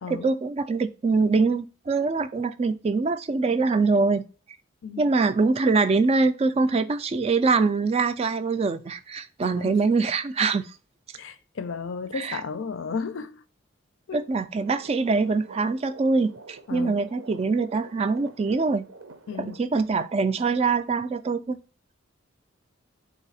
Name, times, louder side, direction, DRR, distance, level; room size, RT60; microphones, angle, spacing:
voice 1, 0.1-4.3 5.0-10.7 12.2-12.4 14.1-18.9 19.4-21.6, right 4 dB, 30° right, 0.3 m, -24 dB
voice 2, 9.4-9.8 11.1-13.4 14.1-14.3 16.7-16.9 19.3-19.6, left 5 dB, 70° left, 0.5 m, -34 dB
sound 1, 14.6-19.6, right 3 dB, 80° right, 0.7 m, -46 dB
4.1 x 2.7 x 4.0 m
head